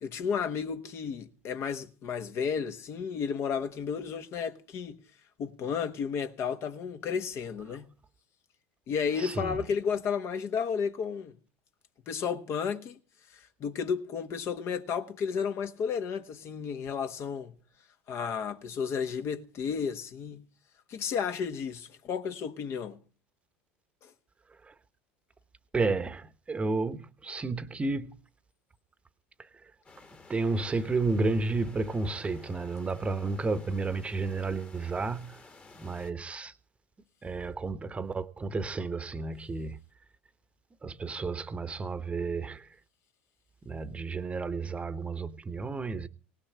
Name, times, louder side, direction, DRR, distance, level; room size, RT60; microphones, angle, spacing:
voice 1, 0.0-5.0 5.4-7.9 8.9-11.3 12.1-13.0 13.3-17.5 18.1-20.4 20.9-23.0 24.0-24.1, left 6 dB, 45° left, 1.2 m, -32 dB
voice 2, 9.2-9.6 24.6-24.7 25.7-28.2 29.4-29.7 30.3-35.4 35.8-36.5 37.2-39.8 40.8-42.7 43.6-46.1, right 3 dB, 20° right, 1.0 m, -32 dB
sound 1, 29.8-36.1, left 4 dB, 25° left, 1.6 m, -53 dB
18.0 x 6.5 x 8.6 m
hypercardioid pair, 80°, 6 cm